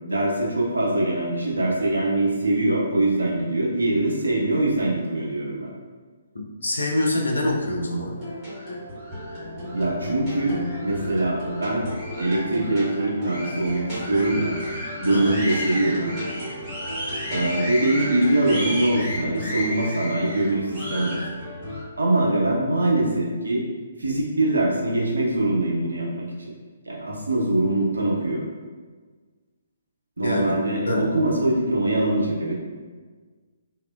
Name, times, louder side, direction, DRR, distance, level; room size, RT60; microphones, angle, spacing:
voice 1, 0.1-5.7 9.7-11.9 12.2-14.6 15.0-16.1 17.3-21.2 22.0-23.7 24.0-26.5 26.9-28.4 30.2-32.5, right 2 dB, 75° right, -3 dB, 0.6 m, -23 dB
voice 2, 6.3-8.2 15.1-15.4 30.2-30.6 30.9-31.1, left 1 dB, 75° left, -1 dB, 0.5 m, -25 dB
sound 1, 8.1-21.8, left 1 dB, ahead, 1.4 m, -32 dB
3.4 x 2.1 x 2.3 m, 1.5 s
figure-of-eight pair, 130°, 0 cm